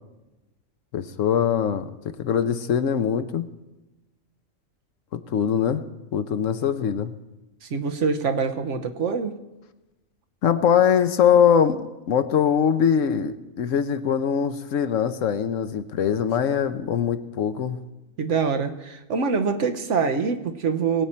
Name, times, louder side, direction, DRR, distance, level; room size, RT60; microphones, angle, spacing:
voice 1, 0.9-1.9 2.2-3.5 5.1-5.8 6.1-7.1 10.4-11.8 12.1-17.8, left 8 dB, 75° left, 10 dB, 1.1 m, -22 dB
voice 2, 7.6-9.4 18.2-21.0, right 5 dB, 65° right, 7 dB, 1.2 m, -25 dB
22.0 x 8.7 x 4.4 m, 1.0 s
omnidirectional pair, 1.4 m